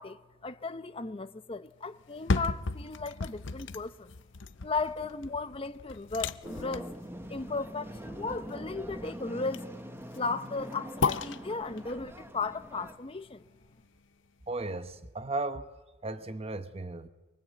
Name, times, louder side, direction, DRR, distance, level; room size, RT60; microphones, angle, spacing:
voice 1, 0.0-4.1 4.6-6.9 7.3-9.7 10.1-13.4, left 3 dB, 30° left, 0.8 m, -36 dB
sound 1, 2.0-14.0 14.5-14.6, left 4 dB, 65° left, 0.7 m, -36 dB
sound 2, 6.4-13.0, equal, 10° right, 1.2 m, -43 dB
voice 2, 14.5-15.7 16.0-17.1, right 2 dB, 30° right, 1.0 m, -35 dB
23.5 x 23.0 x 8.2 m
head